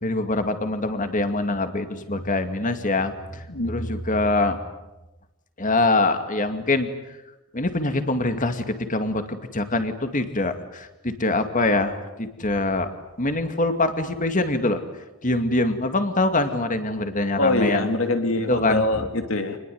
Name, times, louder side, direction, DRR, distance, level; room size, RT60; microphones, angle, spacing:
voice 1, 0.0-4.6 5.6-6.9 7.5-12.9 13.2-14.8 15.2-17.9 18.5-19.1, left 2 dB, 40° left, 8 dB, 2.4 m, -24 dB
voice 2, 3.5-4.0 17.4-19.6, left 2 dB, 70° left, 6 dB, 3.0 m, -24 dB
27.5 x 21.0 x 9.5 m, 1.0 s
head